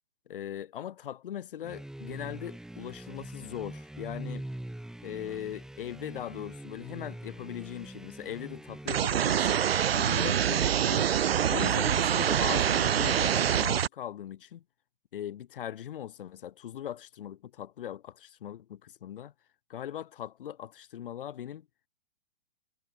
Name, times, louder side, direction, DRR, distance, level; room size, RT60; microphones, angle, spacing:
voice 1, 0.3-4.4 5.0-9.7 9.9-11.1 11.5-14.6 15.1-19.3 19.7-21.7, left 10 dB, 65° left, 3.7 m, -39 dB
sound 1, 1.6-9.4, right 1 dB, ahead, 2.2 m, -43 dB
sound 2, 8.9-13.9, right 9 dB, 80° right, 0.9 m, -25 dB
hypercardioid pair, 140°, 30 cm